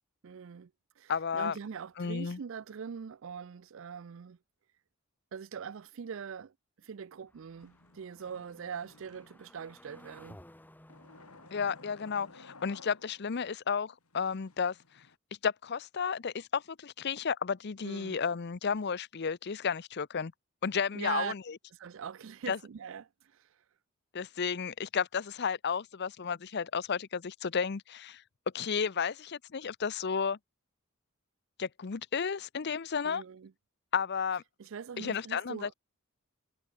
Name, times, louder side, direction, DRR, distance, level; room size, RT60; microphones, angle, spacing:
voice 1, 0.2-0.7 1.0-4.4 5.3-10.4 17.8-18.2 20.9-21.3 21.7-23.5 33.0-33.5 34.6-35.7, right 7 dB, 60° right, 0.4 m, -42 dB
voice 2, 1.1-1.5 2.0-2.4 11.5-14.8 15.4-20.3 20.6-21.4 22.5-22.6 24.1-28.2 28.5-30.4 31.6-33.2 33.9-34.4 35.0-35.7, left 6 dB, 50° left, 0.6 m, -32 dB
sound 1, 7.3-12.4, left 1 dB, 10° left, 1.4 m, -57 dB
sound 2, 7.6-9.6 10.9-13.5 14.1-15.2, left 3 dB, 80° left, 3.4 m, -56 dB
head